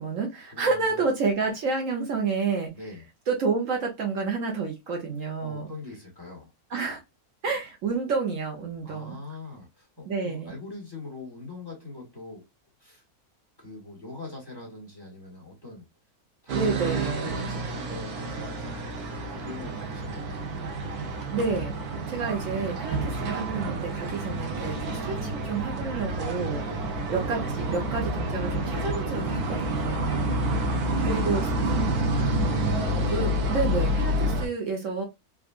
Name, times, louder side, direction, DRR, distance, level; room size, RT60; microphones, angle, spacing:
voice 1, 0.0-2.7 3.3-5.7 6.7-7.0 7.4-9.2 10.1-10.5 16.5-17.3 21.3-26.6 27.1-30.3 31.0-31.4 33.1-35.0, right 4 dB, 65° right, 1.1 m, -29 dB
voice 2, 0.5-1.0 2.7-3.0 5.4-6.5 8.8-12.4 12.8-13.0 13.6-15.9 16.4-18.9 19.4-20.5 26.6-27.0 30.1-32.2, left 3 dB, 15° left, 1.6 m, -42 dB
sound 1, 16.5-34.5, right 1 dB, 90° right, 1.3 m, -29 dB
3.6 x 2.4 x 2.3 m
omnidirectional pair, 1.6 m